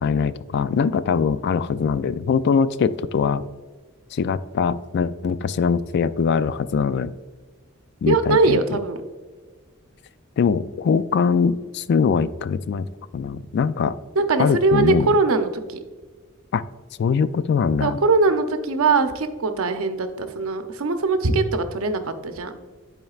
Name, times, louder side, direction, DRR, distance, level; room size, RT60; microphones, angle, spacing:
voice 1, 0.0-3.4 4.1-7.1 8.0-8.6 10.4-12.9 13.1-14.0 14.4-15.1 16.5-16.6 17.0-18.0, left 6 dB, 55° left, 15 dB, 0.3 m, -22 dB
voice 2, 8.1-9.0 14.2-15.8 17.8-22.5, right 3 dB, 85° right, 8 dB, 0.7 m, -21 dB
11.0 x 4.4 x 2.4 m, 1.4 s
head